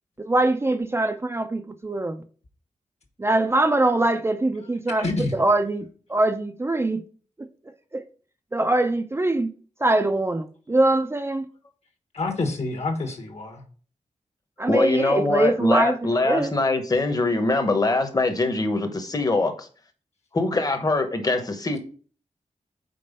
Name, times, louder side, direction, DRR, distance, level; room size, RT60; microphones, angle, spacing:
voice 1, 0.2-2.2 3.2-7.0 7.9-8.0 8.5-9.5 9.8-11.4 14.6-16.5, right 2 dB, 20° right, 0.4 m, -23 dB
voice 2, 5.0-5.3 12.1-13.6, left 3 dB, 60° left, 1.4 m, -27 dB
voice 3, 14.7-19.7 20.3-21.8, left 2 dB, 30° left, 1.0 m, -23 dB
5.3 x 4.4 x 5.3 m
wide cardioid pair, 145°, 13 cm